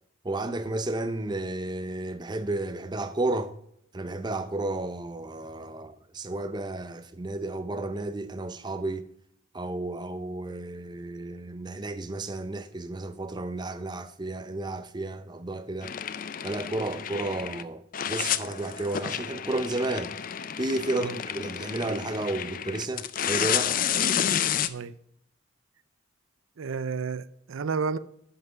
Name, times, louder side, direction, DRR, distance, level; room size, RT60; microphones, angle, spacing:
voice 1, 0.2-3.5 3.9-9.0 9.5-15.9 16.4-20.2 20.6-23.8, right 2 dB, 20° right, 0.5 m, -32 dB
sound 1, 15.8-17.6 17.9-24.7, left 9 dB, 40° left, 0.4 m, -30 dB
voice 2, 26.6-28.0, right 5 dB, 80° right, 0.5 m, -31 dB
11.0 x 5.8 x 4.6 m
head